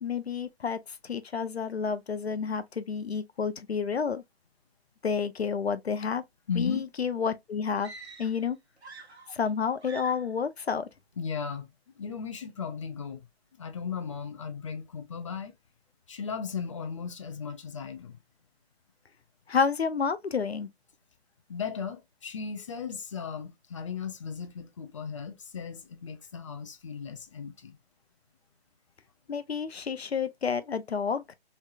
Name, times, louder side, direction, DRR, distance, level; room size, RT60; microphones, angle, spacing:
voice 1, 0.0-4.2 5.0-6.2 6.6-7.9 8.2-8.6 9.3-10.9 19.5-20.7 29.3-31.3, left 6 dB, 75° left, 0.7 m, -30 dB
voice 2, 6.5-6.8 11.2-11.7 12.0-13.2 13.6-15.5 16.1-18.2 21.5-27.8, left 6 dB, 30° left, 0.6 m, -36 dB
sound 1, 7.7-8.5 8.8-9.5 9.8-10.4, right 4 dB, 80° right, 1.2 m, -47 dB
4.3 x 3.2 x 2.3 m
figure-of-eight pair, 140°, 32 cm